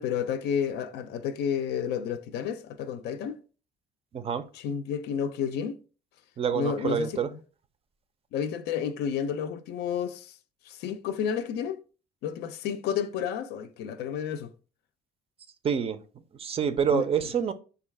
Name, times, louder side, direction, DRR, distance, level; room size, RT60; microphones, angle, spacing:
voice 1, 0.0-3.4 4.5-5.8 6.5-7.2 8.3-10.4 10.7-11.8 12.2-14.5 16.9-17.0, left 8 dB, 75° left, 0.4 m, -31 dB
voice 2, 4.1-4.4 6.4-7.3 15.6-16.0 16.4-17.5, right 7 dB, 35° right, 0.4 m, -27 dB
3.8 x 2.3 x 3.3 m
cardioid pair, 110°, 17 cm